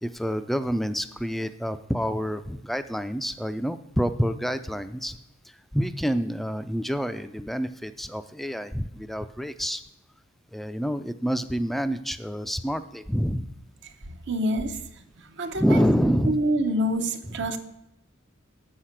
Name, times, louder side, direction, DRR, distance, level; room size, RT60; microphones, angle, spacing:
voice 1, 0.0-5.2 5.4-9.8 10.5-13.5 15.6-16.4 17.3-17.5, equal, ahead, 0.3 m, -27 dB
voice 2, 14.3-14.8 15.4-15.6 16.3-17.6, equal, 60° right, 0.8 m, -26 dB
8.1 x 6.5 x 5.8 m
head